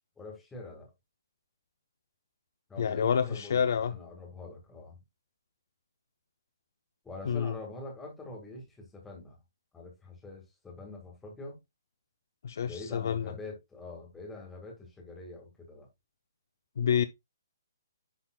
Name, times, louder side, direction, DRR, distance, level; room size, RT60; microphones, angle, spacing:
voice 1, 0.2-0.9 2.7-5.0 7.0-9.4 9.7-11.6 12.6-15.9, left 2 dB, 5° left, 1.9 m, -45 dB
voice 2, 2.8-3.9 7.3-7.5 12.4-13.3 16.8-17.0, left 7 dB, 50° left, 0.5 m, -28 dB
10.5 x 3.8 x 2.3 m
hypercardioid pair, 175°, 2 cm